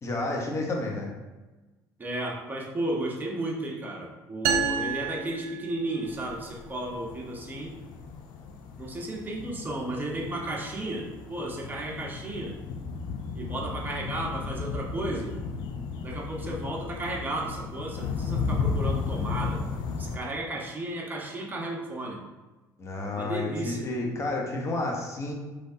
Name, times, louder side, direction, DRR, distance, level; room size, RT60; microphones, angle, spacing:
voice 1, 0.0-1.1 22.8-25.3, left 2 dB, 35° left, 0 dB, 0.9 m, -30 dB
voice 2, 2.0-7.7 8.8-12.5 13.3-15.3 16.0-19.7 20.0-22.2 23.1-23.9, right 1 dB, 25° right, -1 dB, 1.0 m, -33 dB
sound 1, 4.4-6.2, right 7 dB, 85° right, 0.5 m, -30 dB
sound 2, 6.0-20.2, left 5 dB, 70° left, 0.5 m, -35 dB
5.3 x 3.3 x 2.7 m, 1.2 s
supercardioid pair, 90°, 8 cm